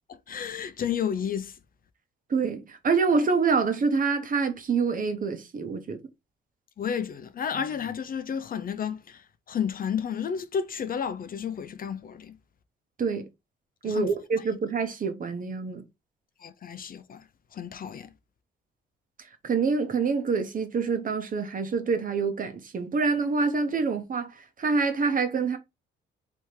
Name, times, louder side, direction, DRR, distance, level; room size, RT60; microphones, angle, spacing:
voice 1, 0.3-1.5 6.8-9.2 9.5-12.3 13.9-14.1 16.4-17.2 17.5-18.1, left 7 dB, 45° left, 0.6 m, -31 dB
voice 2, 2.3-6.0 13.0-13.2 13.8-15.8 19.4-24.3 24.6-25.6, right 4 dB, 45° right, 1.0 m, -26 dB
3.5 x 3.1 x 4.4 m
cardioid pair, 90°, 20 cm